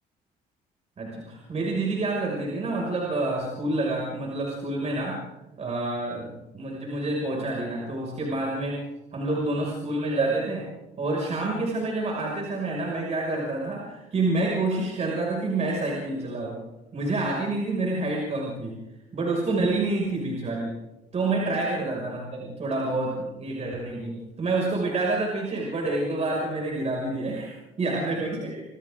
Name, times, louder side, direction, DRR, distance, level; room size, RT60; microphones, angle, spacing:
voice 1, 1.0-5.3 5.6-8.8 9.1-10.7 11.0-16.6 16.9-18.8 19.1-20.7 21.1-28.6, right 2 dB, 40° right, -1 dB, 6.2 m, -28 dB
27.0 x 26.5 x 3.9 m, 1.0 s
cardioid pair, 110°, 17 cm